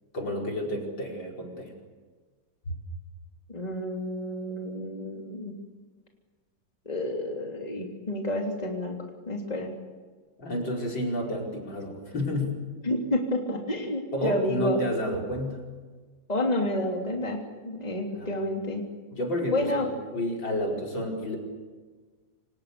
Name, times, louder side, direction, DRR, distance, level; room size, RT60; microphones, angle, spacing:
voice 1, 0.1-1.7 10.4-12.6 14.1-15.6 18.2-18.3 19.2-21.4, left 1 dB, 70° left, 0 dB, 5.9 m, -30 dB
voice 2, 3.5-5.5 6.8-9.0 9.3-9.7 12.8-14.8 16.3-18.8 19.5-19.9, left 1 dB, 20° left, 1 dB, 3.4 m, -29 dB
28.5 x 26.0 x 7.0 m, 1.4 s
omnidirectional pair, 2.1 m